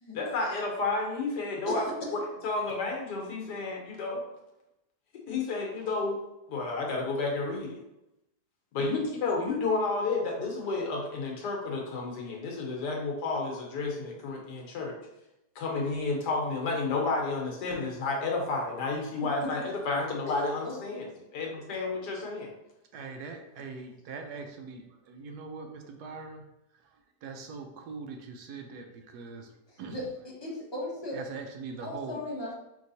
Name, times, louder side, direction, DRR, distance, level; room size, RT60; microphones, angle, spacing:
voice 1, 0.1-1.8 2.1-4.2 5.1-6.2 6.5-7.8 8.7-15.0 15.5-22.5, left 3 dB, 85° left, 0 dB, 1.5 m, -31 dB
voice 2, 1.7-2.2 20.3-21.0 29.9-30.0 30.4-31.2 31.8-32.6, left 1 dB, 25° left, -4 dB, 0.6 m, -36 dB
voice 3, 22.9-26.4 26.7-30.1 31.1-32.2, right 4 dB, 75° right, 5 dB, 1.1 m, -42 dB
4.6 x 3.5 x 2.7 m, 0.90 s
omnidirectional pair, 1.8 m